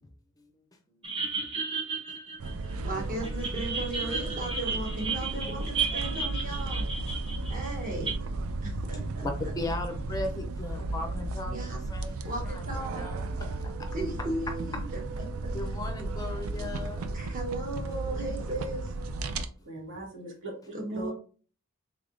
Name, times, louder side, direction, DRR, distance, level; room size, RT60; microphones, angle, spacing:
sound 1, 1.0-2.9 3.2-8.1, right 5 dB, 25° right, 0.9 m, -33 dB
sound 2, 2.4-19.5, right 2 dB, 80° right, 0.4 m, -34 dB
voice 1, 2.8-6.9 7.5-8.1 8.6-9.3 11.5-11.8 12.2-13.0 13.9-14.8 15.4-15.5 16.6-16.8 17.1-18.9 20.7-21.1, right 1 dB, 40° right, 1.2 m, -36 dB
voice 2, 9.5-12.2 12.5-12.6 13.0-13.3 13.6-13.7 15.5-17.1, left 2 dB, 15° left, 0.5 m, -37 dB
voice 3, 19.6-21.1, right 3 dB, 65° right, 1.4 m, -40 dB
3.5 x 3.4 x 2.5 m
head